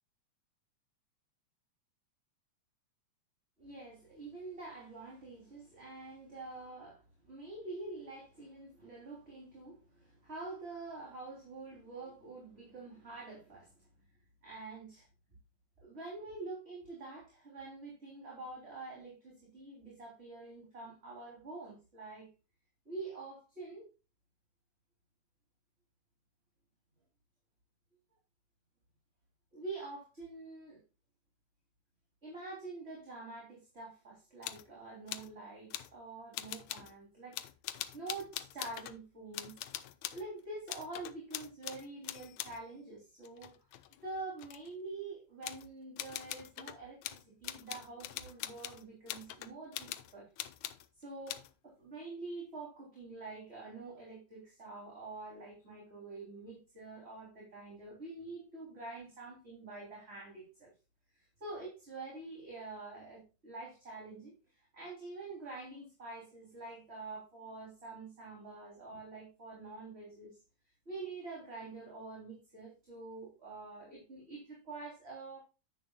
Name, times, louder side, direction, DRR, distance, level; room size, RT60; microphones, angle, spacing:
voice 1, 3.6-13.7 14.4-15.1 15.8-22.3 22.8-23.9 29.5-30.8 32.2-37.4 37.9-39.5 40.1-43.5 44.0-50.3 51.0-60.7 61.1-70.4 70.8-75.4, right 3 dB, 20° right, -3 dB, 3.3 m, -46 dB
sound 1, 34.4-34.7 35.1-35.3 35.7-35.9 36.3-36.9 37.3-39.0 39.3-40.3 40.7-42.6 43.2-44.7 45.4-45.7 46.0-50.9 51.3-51.5, left 13 dB, 75° left, 1.8 m, -43 dB
10.0 x 9.6 x 2.3 m, 0.30 s
omnidirectional pair, 3.5 m